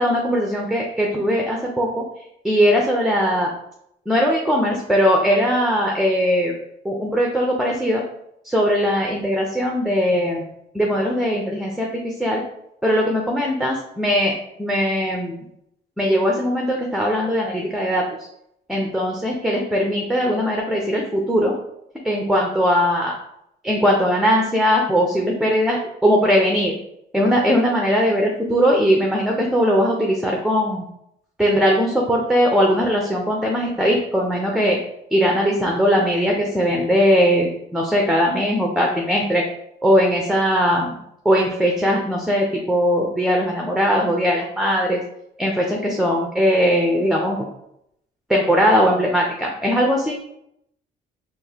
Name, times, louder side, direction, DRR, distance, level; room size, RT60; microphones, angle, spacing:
voice 1, 0.0-2.1 2.4-3.5 4.1-6.5 6.8-8.0 8.4-10.4 10.7-12.4 12.8-15.3 16.0-18.1 18.7-21.5 22.0-23.1 23.6-26.7 27.1-30.8 31.4-34.8 35.1-39.4 39.8-41.0 41.2-45.0 45.4-47.5 48.3-50.1, equal, ahead, -1 dB, 0.6 m, -20 dB
4.6 x 2.7 x 2.9 m, 0.77 s
cardioid pair, 90°, 20 cm